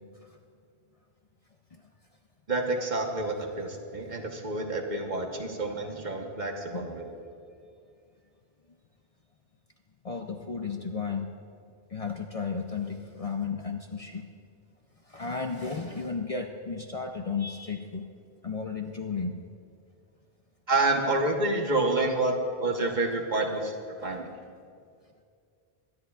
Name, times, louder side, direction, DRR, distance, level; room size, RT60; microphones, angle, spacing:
voice 1, 2.5-7.1 20.7-23.7 24.0-24.3, right 2 dB, 50° right, 2 dB, 1.1 m, -28 dB
voice 2, 10.0-11.3 11.9-14.2 15.1-18.0 18.4-19.3, left 5 dB, 45° left, 4 dB, 0.5 m, -33 dB
23.0 x 10.5 x 2.3 m, 2.3 s
omnidirectional pair, 1.0 m